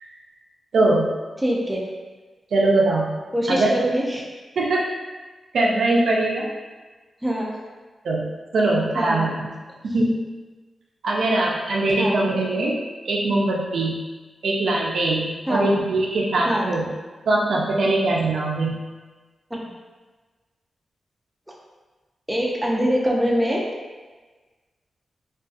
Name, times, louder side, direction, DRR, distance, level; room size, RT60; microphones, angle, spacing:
voice 1, 0.7-1.1 2.5-3.1 3.5-3.7 4.6-4.9 5.5-6.5 8.0-9.5 9.9-10.1 11.0-12.8 13.0-14.0 14.4-16.8 17.3-18.8, right 2 dB, 80° right, -3 dB, 0.4 m, -21 dB
voice 2, 1.4-1.8 3.3-4.2 7.2-7.6 8.9-9.3 12.0-12.2 15.5-15.7 16.5-16.7 22.3-23.7, equal, 5° right, -3 dB, 0.4 m, -23 dB
2.5 x 2.3 x 2.3 m, 1.3 s
wide cardioid pair, 125°, 0 cm